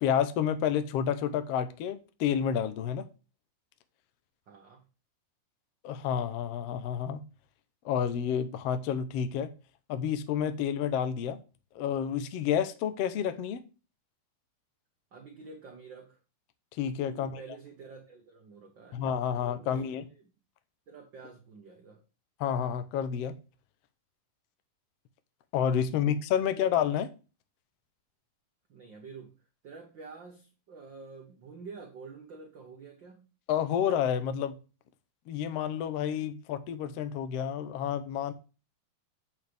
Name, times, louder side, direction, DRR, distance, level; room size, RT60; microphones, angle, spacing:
voice 1, 0.0-3.0 5.8-7.2 7.8-9.5 9.9-11.4 11.7-13.6 16.7-17.4 18.9-20.1 22.4-23.3 25.5-27.1 33.5-34.6 35.3-38.3, left 8 dB, 75° left, 1.5 m, -29 dB
voice 2, 4.5-4.8 15.1-16.2 17.1-19.0 19.3-20.3 20.9-22.0 25.9-26.1 26.6-26.7 28.7-29.3 29.6-33.2, right 4 dB, 60° right, 1.2 m, -48 dB
8.6 x 6.6 x 3.4 m
omnidirectional pair, 3.9 m